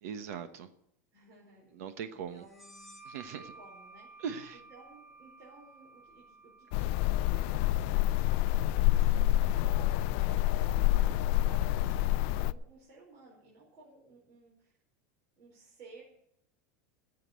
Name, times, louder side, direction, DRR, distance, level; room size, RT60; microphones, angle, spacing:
voice 1, 0.0-0.7 1.7-2.4 3.0-3.5 4.2-4.6, right 7 dB, 65° right, 10 dB, 1.2 m, -40 dB
voice 2, 1.1-4.1 4.5-14.7 15.4-16.0, right 2 dB, 45° right, -5 dB, 5.2 m, -57 dB
sound 1, 2.4-9.8, right 3 dB, ahead, 1.1 m, -55 dB
sound 2, 6.7-12.5, left 15 dB, 45° left, 0.4 m, -27 dB
14.5 x 8.4 x 8.4 m, 0.76 s
supercardioid pair, 175°, 9 cm